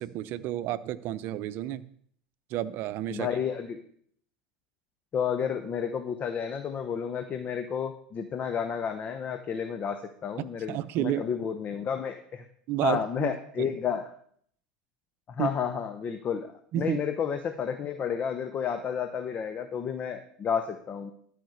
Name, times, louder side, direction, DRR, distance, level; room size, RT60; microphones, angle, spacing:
voice 1, 0.0-1.9 2.5-3.4 10.4-11.2 12.7-13.3 13.6-13.8 15.4-15.5 16.7-17.0, right 13 dB, 50° right, 15 dB, 0.7 m, -31 dB
voice 2, 3.1-3.8 5.1-12.4 12.8-14.1 15.3-21.1, left 7 dB, 35° left, 8 dB, 0.9 m, -31 dB
13.0 x 5.2 x 6.5 m, 0.63 s
hypercardioid pair, 85°, 4 cm